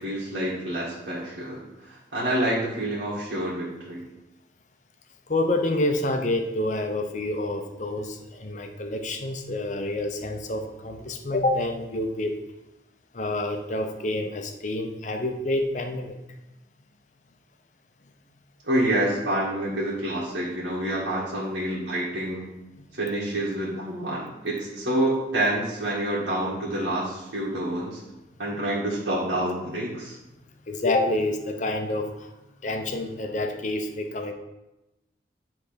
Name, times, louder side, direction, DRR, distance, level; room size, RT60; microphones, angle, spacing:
voice 1, 0.0-1.6 1.9-4.0 18.6-22.5 22.9-28.0 28.4-30.1, right 1 dB, 80° right, -8 dB, 1.8 m, -27 dB
voice 2, 5.3-12.4 13.1-16.2 22.8-22.9 30.7-32.3 32.6-34.3, left 2 dB, 40° left, 5 dB, 0.7 m, -28 dB
9.4 x 3.5 x 5.1 m, 0.97 s
head